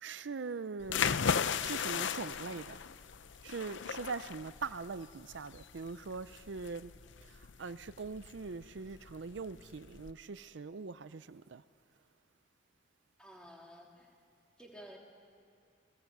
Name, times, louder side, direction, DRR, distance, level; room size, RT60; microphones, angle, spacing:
voice 1, 0.0-2.8 3.4-6.9 7.2-11.6, right 4 dB, 70° right, 0.5 m, -42 dB
sound 1, 0.8-10.1, left 7 dB, 75° left, 0.6 m, -37 dB
voice 2, 13.2-14.1 14.6-15.0, equal, 5° left, 3.2 m, -52 dB
29.5 x 18.5 x 8.0 m
head